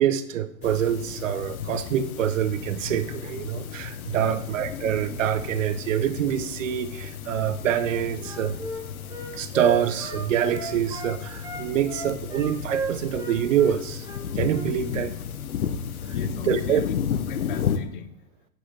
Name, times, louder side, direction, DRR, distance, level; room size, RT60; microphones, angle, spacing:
voice 1, 0.0-8.6 9.3-14.1 14.3-15.1 16.5-16.8, right 9 dB, 65° right, 12 dB, 0.6 m, -25 dB
sound 1, 0.6-17.8, left 8 dB, 75° left, 0.7 m, -33 dB
voice 2, 4.1-4.5 9.4-9.5 14.3-14.4 15.6-15.7 16.0-17.0 17.3-18.1, left 9 dB, 40° left, 11 dB, 0.4 m, -37 dB
Wind instrument woodwind instrument, 7.7-11.1 11.4-14.7, right 3 dB, 10° right, 0.9 m, -33 dB
8.4 x 5.7 x 2.7 m, 0.74 s
figure-of-eight pair, 105°, 43 cm